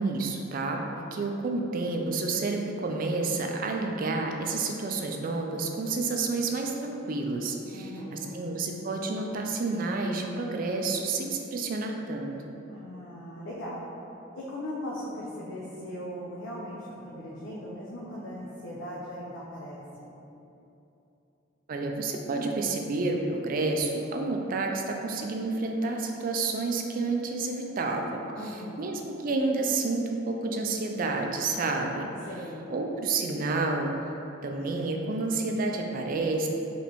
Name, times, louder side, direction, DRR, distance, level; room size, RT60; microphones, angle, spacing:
voice 1, 0.0-12.3 21.7-32.1 32.7-34.1 34.4-36.5, right 3 dB, 45° right, 2 dB, 0.4 m, -30 dB
voice 2, 7.6-8.4 12.7-13.8 14.4-20.2 28.3-28.9 32.3-32.7, equal, 90° left, -6 dB, 0.5 m, -39 dB
4.1 x 3.2 x 2.9 m, 2.9 s
head